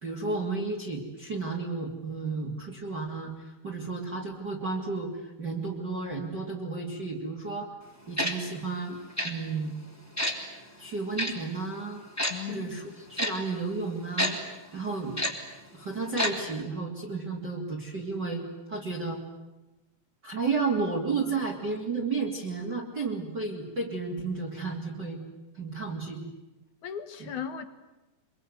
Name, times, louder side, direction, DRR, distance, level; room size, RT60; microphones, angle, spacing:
voice 1, 0.0-7.7 8.1-9.7 10.8-12.0 12.5-14.4 14.7-15.2 15.7-19.2 20.2-25.2 25.5-26.3 27.2-27.3, right 4 dB, 25° right, 0 dB, 3.1 m, -32 dB
Tick-tock, 8.2-8.3 9.2-9.3 10.2-10.3 11.2-11.3 12.2-12.3 13.2-13.3 14.2-14.3 15.2-15.3 16.2-16.3 16.6-16.7, equal, 5° left, 3.0 m, -27 dB
voice 2, 12.3-12.8 21.2-21.3 26.8-27.6, left 8 dB, 60° left, 10 dB, 2.3 m, -37 dB
26.5 x 23.5 x 9.7 m, 1.0 s
omnidirectional pair, 5.0 m